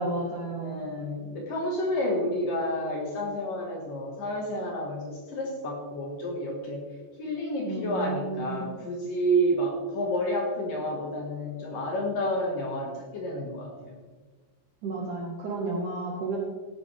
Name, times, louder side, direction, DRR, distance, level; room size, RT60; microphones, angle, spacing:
voice 1, 0.0-0.8 7.6-8.7 14.8-16.4, right 3 dB, 65° right, -2 dB, 2.1 m, -32 dB
voice 2, 0.6-6.9 7.2-14.0, equal, 60° left, -1 dB, 2.7 m, -30 dB
15.5 x 10.5 x 3.4 m, 1.4 s
omnidirectional pair, 5.4 m